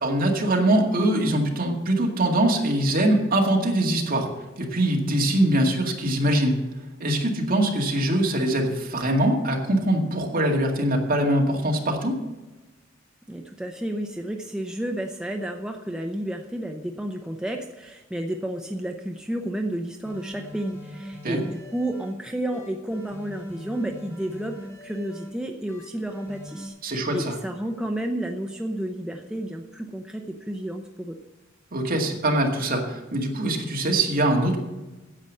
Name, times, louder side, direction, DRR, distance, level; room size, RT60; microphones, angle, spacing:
voice 1, 0.0-4.3 4.6-6.6 7.0-12.2 21.2-21.4 26.8-27.4 31.7-34.6, right 1 dB, 45° right, 1 dB, 2.1 m, -23 dB
voice 2, 13.3-26.7 27.1-31.2, right 1 dB, 5° right, 2 dB, 0.7 m, -31 dB
sound 1, 20.0-22.1 22.5-25.3 25.7-26.7, equal, 15° left, 2.2 m, -41 dB
9.9 x 7.9 x 7.4 m, 1.1 s
head